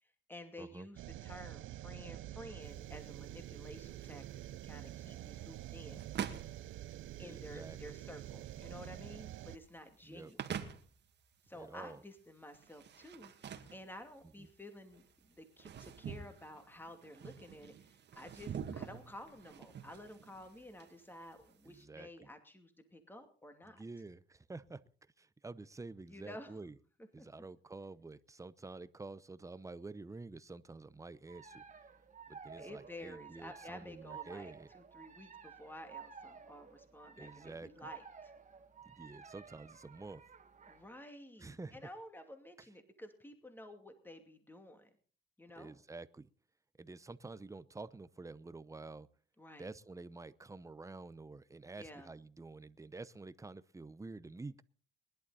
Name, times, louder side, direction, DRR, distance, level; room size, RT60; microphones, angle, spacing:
voice 1, 0.0-4.3 4.6-6.1 7.2-10.5 11.5-23.8 26.1-26.5 27.2-27.3 32.6-38.3 40.7-44.9 45.4-45.8 49.4-49.7 51.8-52.1, left 1 dB, 10° left, 7 dB, 2.5 m, -52 dB
sound 1, 1.0-9.6, right 14 dB, 75° right, 0.6 m, -47 dB
sound 2, 2.6-21.8, right 8 dB, 60° right, 1.9 m, -48 dB
voice 2, 7.2-8.0 10.1-10.3 11.5-12.0 14.4-14.5 21.6-22.3 23.6-24.8 25.2-26.7 27.1-31.6 32.3-34.7 37.2-37.9 38.9-40.2 41.4-41.8 45.6-46.3 46.8-49.1 49.6-54.6, right 3 dB, 15° right, 16 dB, 0.8 m, -49 dB
sound 3, 31.3-40.9, right 6 dB, 40° right, 1.9 m, -53 dB
21.0 x 11.5 x 4.1 m, 0.42 s
cardioid pair, 90°, 20 cm